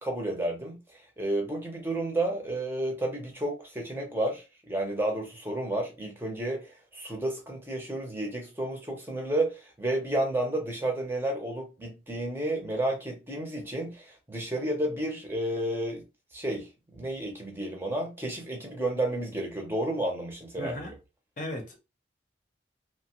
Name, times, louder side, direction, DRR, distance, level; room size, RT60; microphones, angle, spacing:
voice 1, 0.0-16.0 16.3-21.0, right 1 dB, 15° right, 0.6 m, -31 dB
voice 2, 20.6-20.9 21.4-21.8, left 1 dB, 45° left, 0.7 m, -36 dB
3.0 x 2.2 x 2.9 m
head